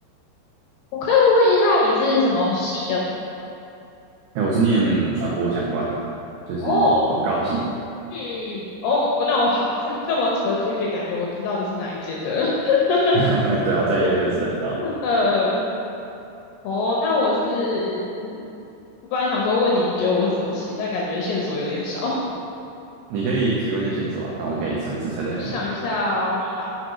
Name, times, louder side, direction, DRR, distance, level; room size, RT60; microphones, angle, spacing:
voice 1, 0.9-3.0 6.6-7.1 8.1-13.2 14.0-14.1 14.8-15.6 16.6-18.4 19.1-22.3 25.4-26.7, left 2 dB, 75° left, -4 dB, 2.4 m, -22 dB
voice 2, 4.4-6.0 6.5-7.7 13.1-14.8 23.1-25.6, right 3 dB, 80° right, -4 dB, 2.3 m, -23 dB
6.3 x 6.1 x 5.0 m, 2.7 s
omnidirectional pair, 5.4 m